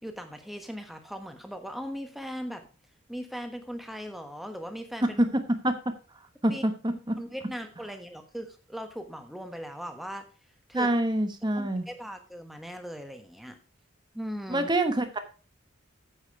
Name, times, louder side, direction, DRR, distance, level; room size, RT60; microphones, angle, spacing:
voice 1, 0.0-2.7 3.1-5.2 6.5-6.6 7.2-10.3 10.7-10.9 11.6-13.6 14.1-14.7, equal, ahead, 6 dB, 1.2 m, -39 dB
voice 2, 6.4-7.2 10.7-11.9 14.5-15.2, right 1 dB, 20° right, 8 dB, 1.1 m, -26 dB
9.0 x 7.3 x 4.5 m, 0.36 s
head